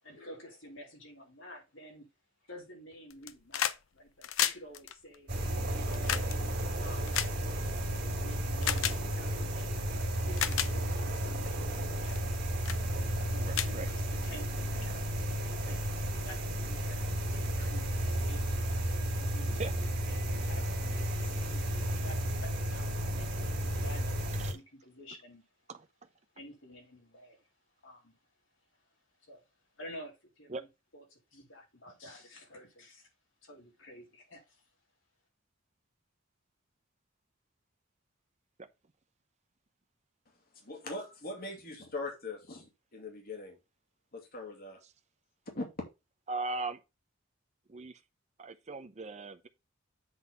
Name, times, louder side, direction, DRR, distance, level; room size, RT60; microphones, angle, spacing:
voice 1, 0.0-2.1 2.4-6.3 6.8-7.2 8.0-12.5 12.9-15.3 15.6-15.8 16.2-16.4 16.6-17.0 17.3-18.9 19.2-19.6 20.1-25.4 26.3-27.5 27.8-28.2 28.7-29.5 29.7-30.6 30.9-33.1 33.4-34.7, left 1 dB, 70° left, 3.7 m, -51 dB
sound 1, 3.1-3.8 4.1-8.0 8.6-9.0 9.8-9.9 10.3-10.7 11.3-11.5 12.1-12.3 12.6-12.8 13.2-13.3 13.5-14.5 15.6-15.7, left 10 dB, 85° left, 0.6 m, -33 dB
sound 2, 5.3-24.5, equal, 55° right, 2.4 m, -33 dB
voice 2, 13.4-13.9 19.6-19.7 24.4-24.6 25.7-25.9 30.5-30.6 46.3-46.8 47.7-48.0 48.4-49.5, right 3 dB, 35° right, 0.7 m, -38 dB
voice 3, 40.6-43.6 44.1-44.8 45.5-45.6, left 2 dB, 50° left, 2.4 m, -41 dB
8.0 x 4.0 x 5.4 m
head